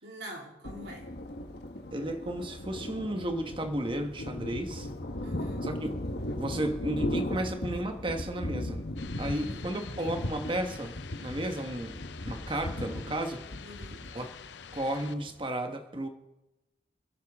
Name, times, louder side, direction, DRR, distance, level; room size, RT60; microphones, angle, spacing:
voice 1, 0.0-1.1 5.2-5.7 9.3-9.7 13.6-14.0, equal, 70° right, 3.6 m, -45 dB
Thunder, 0.6-15.4, left 1 dB, 65° left, 1.3 m, -37 dB
voice 2, 1.9-4.9 5.6-5.9 6.3-8.8 9.2-12.0 12.2-13.4 14.1-14.3 14.7-16.1, right 1 dB, 30° right, 1.3 m, -33 dB
sound 1, 9.0-15.1, left 7 dB, 80° left, 0.7 m, -47 dB
27.0 x 11.5 x 3.6 m
head